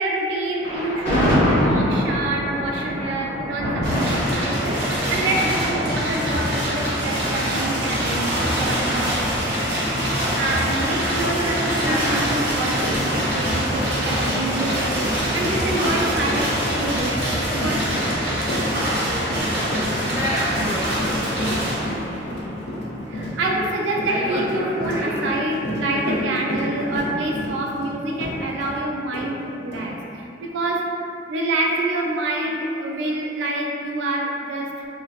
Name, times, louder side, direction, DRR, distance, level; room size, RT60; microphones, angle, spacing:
voice 1, 0.0-9.4 10.1-17.2 17.5-18.1 23.1-34.9, right 2 dB, 75° right, -1 dB, 0.3 m, -27 dB
Thunder, 0.6-7.8, equal, 25° left, 1.4 m, -24 dB
sound 1, 3.8-23.3, equal, 55° right, 0.7 m, -24 dB
voice 2, 11.8-12.5 20.0-21.1 24.1-25.4 25.9-26.5, equal, 15° right, -11 dB, 0.6 m, -29 dB
Run, 12.4-12.5 12.8-28.8 29.1-29.3 29.7-29.8, equal, 65° left, 0.6 m, -31 dB
4.0 x 2.0 x 2.4 m, 2.8 s
head